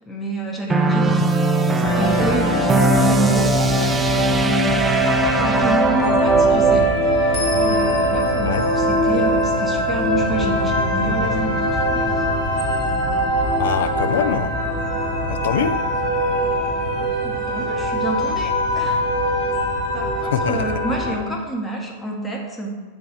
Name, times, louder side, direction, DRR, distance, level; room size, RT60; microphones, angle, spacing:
voice 1, 0.0-12.3 17.0-19.0 19.9-22.8, right 2 dB, 15° left, 0 dB, 1.0 m, -29 dB
sound 1, 0.7-6.9, right 3 dB, 15° right, 0.3 m, -20 dB
sound 2, 1.8-21.1, equal, 35° left, 1.9 m, -21 dB
sound 3, 2.3-11.6, right 2 dB, 75° right, 0.6 m, -33 dB
voice 2, 13.6-14.5 15.3-15.8 20.3-20.7, left 8 dB, 60° left, 9 dB, 0.4 m, -23 dB
8.4 x 3.2 x 4.4 m, 1.5 s
figure-of-eight pair, 90°, 0 cm